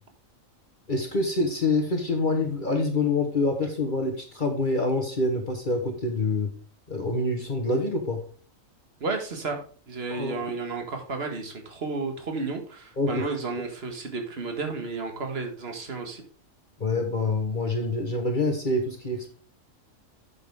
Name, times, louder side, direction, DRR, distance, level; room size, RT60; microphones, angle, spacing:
voice 1, 0.9-6.5 6.9-8.2 10.1-10.5 13.0-13.2 16.8-19.3, left 2 dB, 40° left, 4 dB, 1.3 m, -26 dB
voice 2, 9.0-16.2, right 4 dB, 50° right, 4 dB, 1.8 m, -32 dB
9.0 x 7.2 x 3.6 m, 0.40 s
omnidirectional pair, 1.4 m